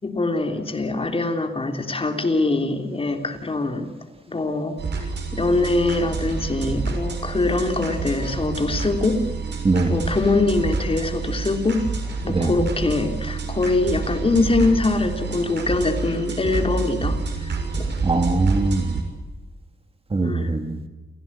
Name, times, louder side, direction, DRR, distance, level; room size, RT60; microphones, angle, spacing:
voice 1, 0.0-3.9 4.3-4.8 5.3-9.3 9.9-11.9 12.2-17.5 17.8-17.9 20.2-20.5, left 3 dB, 30° left, 5 dB, 3.2 m, -23 dB
sound 1, 4.8-19.0, right 4 dB, 85° right, 6.4 m, -28 dB
voice 2, 18.0-19.0 20.1-20.8, right 3 dB, 35° right, 7 dB, 2.6 m, -21 dB
29.5 x 17.0 x 8.7 m, 1.2 s
wide cardioid pair, 130°, 18 cm